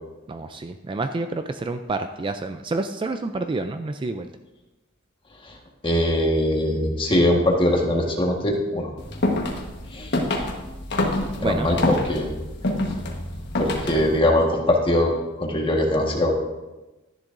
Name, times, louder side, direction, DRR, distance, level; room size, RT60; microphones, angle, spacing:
voice 1, 0.3-4.3 11.4-11.9, right 3 dB, 25° right, 8 dB, 0.3 m, -28 dB
voice 2, 5.8-8.9 9.9-10.1 11.4-12.3 13.6-15.1 15.4-16.3, left 1 dB, 25° left, 0 dB, 1.5 m, -21 dB
sound 1, 9.0-14.2, left 1 dB, 55° left, 1.4 m, -27 dB
12.5 x 10.5 x 2.6 m, 1.1 s
head